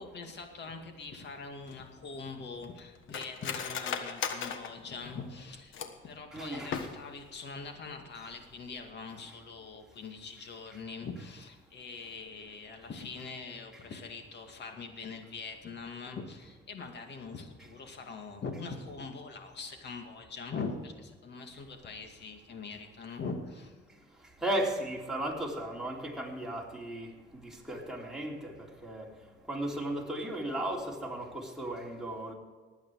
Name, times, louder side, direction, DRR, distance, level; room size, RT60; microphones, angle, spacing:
voice 1, 0.0-5.8 6.0-23.7, left 4 dB, 60° left, 2.3 m, -42 dB
Cutlery silverware, 1.7-6.1 6.6-7.3 7.6-7.7 8.0-8.4 8.7-8.9, left 7 dB, 80° left, 1.4 m, -38 dB
voice 2, 6.3-6.8 24.4-27.1 27.7-28.5 28.8-29.1 29.5-32.3, right 1 dB, 5° right, 3.6 m, -35 dB
19.5 x 8.5 x 4.8 m
cardioid pair, 90°, 20 cm